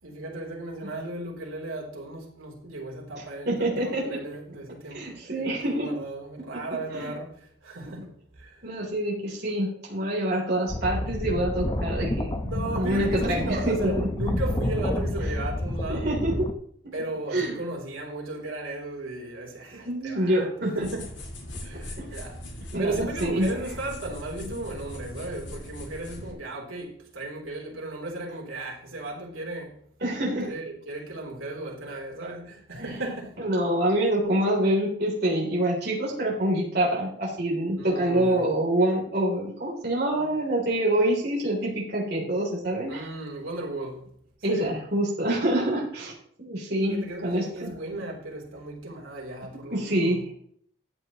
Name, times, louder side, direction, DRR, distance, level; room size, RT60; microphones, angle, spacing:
voice 1, 0.0-8.6 12.5-16.1 16.9-20.5 20.7-21.1 21.6-29.8 30.4-33.4 37.7-38.5 42.9-44.1 44.5-44.8 46.9-50.2, right 2 dB, 90° right, 3.5 m, -35 dB
voice 2, 3.4-4.2 4.9-5.9 6.4-6.5 6.9-7.1 8.6-14.1 15.9-16.5 16.8-16.9 17.3-17.6 19.7-20.9 22.0-22.1 22.7-22.9 23.2-23.5 30.0-30.5 32.8-32.9 33.4-43.1 44.4-46.1 46.4-47.7 49.7-50.3, right 1 dB, 50° right, 3.3 m, -26 dB
sound 1, 10.7-16.5, left 1 dB, 20° left, 0.8 m, -29 dB
sound 2, 20.8-26.3, left 1 dB, 60° left, 2.8 m, -40 dB
13.5 x 9.2 x 3.1 m
head